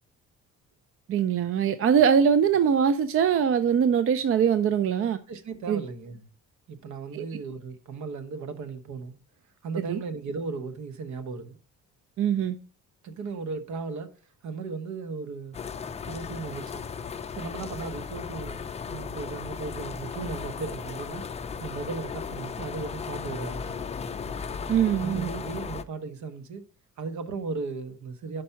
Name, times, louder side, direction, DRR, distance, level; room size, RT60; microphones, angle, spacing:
voice 1, 1.1-5.2 5.7-5.8 7.1-7.2 9.9-10.0 12.2-12.6 24.7-25.3, right 7 dB, 45° right, 0.5 m, -22 dB
voice 2, 5.3-6.3 6.7-9.1 9.6-11.6 13.0-14.1 14.4-15.6 16.1-16.8 17.3-21.3 21.6-23.8 25.0-26.6 27.0-28.4, right 4 dB, 65° right, 1.1 m, -36 dB
sound 1, 15.5-25.8, left 6 dB, 20° left, 0.4 m, -36 dB
5.5 x 5.3 x 5.6 m
cardioid pair, 125°, 31 cm